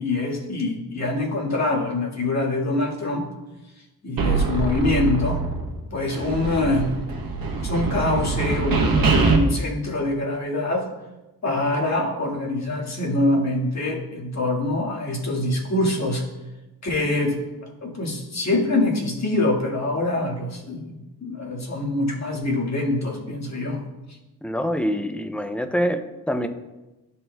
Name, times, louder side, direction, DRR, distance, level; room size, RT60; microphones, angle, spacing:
voice 1, 0.0-3.3 4.0-5.4 5.9-6.9 7.6-10.9 11.4-16.2 16.8-17.4 17.8-23.8, left 2 dB, 45° left, -2 dB, 1.8 m, -24 dB
sound 1, 4.2-5.8 6.1-9.4, right 4 dB, 60° right, 1.2 m, -23 dB
voice 2, 24.4-26.5, equal, 5° left, 8 dB, 0.5 m, -25 dB
12.5 x 4.3 x 2.2 m, 1.0 s
cardioid pair, 75°, 38 cm